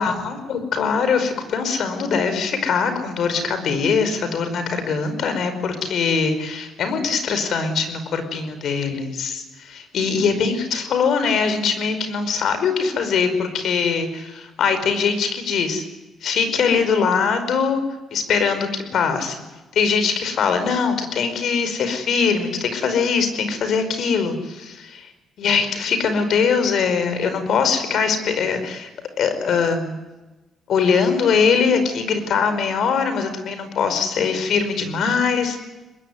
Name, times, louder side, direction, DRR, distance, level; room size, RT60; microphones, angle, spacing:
voice 1, 0.0-15.8 16.2-17.8 18.1-19.4 19.7-25.1 25.4-28.9 29.2-30.0 30.7-35.6, left 5 dB, 70° left, 9 dB, 5.1 m, -22 dB
24.0 x 21.0 x 9.7 m, 1.1 s
cardioid pair, 90°, 0 cm